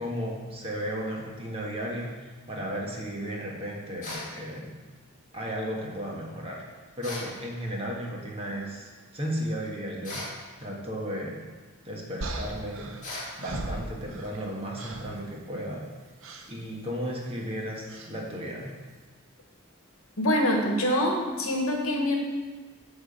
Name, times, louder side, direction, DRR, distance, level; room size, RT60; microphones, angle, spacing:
voice 1, 0.0-4.8 5.3-6.7 7.0-10.2 10.6-11.4 11.8-12.9 13.4-15.9 16.5-18.7, equal, 25° right, -2 dB, 1.4 m, -34 dB
sound 1, 4.0-4.3 7.0-7.3 10.0-10.4 13.0-13.3, left 1 dB, 35° left, 2.1 m, -37 dB
sound 2, 12.2-14.5 14.7-15.2 16.2-16.5 17.9-18.2, right 2 dB, 65° right, 0.8 m, -37 dB
voice 2, 20.2-22.2, left 1 dB, 65° left, 0 dB, 1.3 m, -25 dB
9.0 x 3.5 x 6.6 m, 1.4 s
head